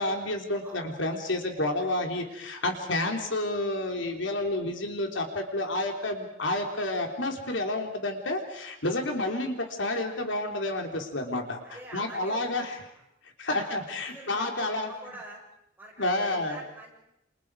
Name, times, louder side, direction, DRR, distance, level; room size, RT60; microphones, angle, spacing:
voice 1, 0.0-12.8 13.4-14.9 16.0-16.6, left 1 dB, 70° left, 3 dB, 3.5 m, -30 dB
voice 2, 0.6-1.0 1.7-2.0 11.6-12.7 13.5-15.4 15.8-16.9, right 1 dB, 10° right, -3 dB, 7.4 m, -46 dB
28.5 x 27.0 x 4.9 m, 0.83 s
head